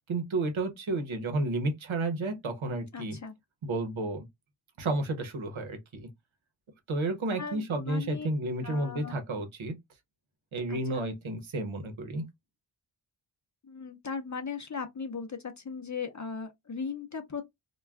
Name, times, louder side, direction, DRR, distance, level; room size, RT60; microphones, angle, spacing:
voice 1, 0.1-3.2 3.6-4.2 4.8-6.1 6.9-9.7 10.5-12.2, right 2 dB, 80° right, 0.8 m, -31 dB
voice 2, 2.9-3.4 7.4-8.3 8.6-9.2 10.7-11.0 13.6-17.4, left 5 dB, 40° left, 0.5 m, -38 dB
2.3 x 2.2 x 3.3 m
wide cardioid pair, 75°, 47 cm